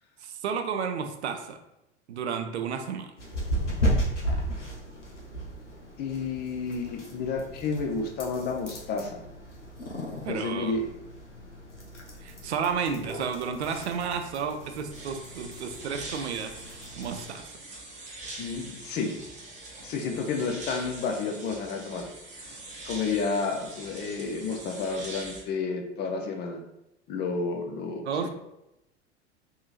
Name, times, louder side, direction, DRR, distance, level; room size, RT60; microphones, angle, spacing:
voice 1, 0.2-1.6 2.1-3.1 10.2-10.8 12.2-17.5 28.1-28.3, right 6 dB, 70° right, 7 dB, 0.5 m, -32 dB
sound 1, 3.2-17.3, equal, 85° left, 0.8 m, -35 dB
voice 2, 6.0-9.2 10.3-10.9 18.4-19.2 19.8-22.1 22.9-26.6 27.1-28.3, left 4 dB, 30° left, 2 dB, 0.5 m, -31 dB
sound 2, 14.9-25.4, right 2 dB, 20° right, 0.8 m, -43 dB
3.7 x 2.7 x 2.4 m, 0.89 s
figure-of-eight pair, 80°, 35 cm